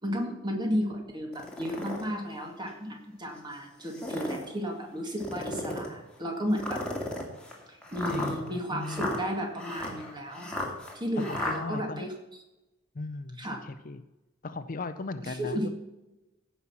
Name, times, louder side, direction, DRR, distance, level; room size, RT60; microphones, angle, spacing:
voice 1, 0.0-6.8 7.7-10.7 10.9-12.1 13.4-13.6 15.2-15.7, equal, 25° right, 2 dB, 2.1 m, -33 dB
sound 1, 1.3-2.0 2.7-2.8 3.8-4.5 5.2-5.9 6.6-11.6, left 1 dB, 5° left, 2.3 m, -35 dB
voice 2, 8.1-9.1 11.3-12.1 12.9-14.0 14.4-15.7, left 3 dB, 45° left, 11 dB, 0.5 m, -37 dB
15.5 x 5.7 x 6.0 m, 1.0 s
head